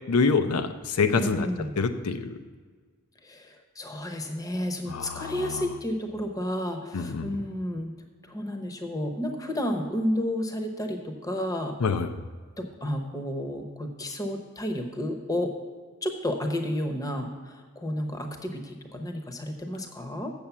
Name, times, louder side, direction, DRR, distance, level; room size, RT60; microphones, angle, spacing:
voice 1, 0.1-1.5 1.8-2.4 4.9-5.6 6.9-7.3 11.8-12.2, left 4 dB, 85° left, 8 dB, 0.5 m, -26 dB
voice 2, 1.2-1.7 3.2-7.9 8.2-11.8 12.6-15.5 16.0-20.3, left 1 dB, 15° left, 4 dB, 0.8 m, -31 dB
7.4 x 6.9 x 7.1 m, 1.5 s
head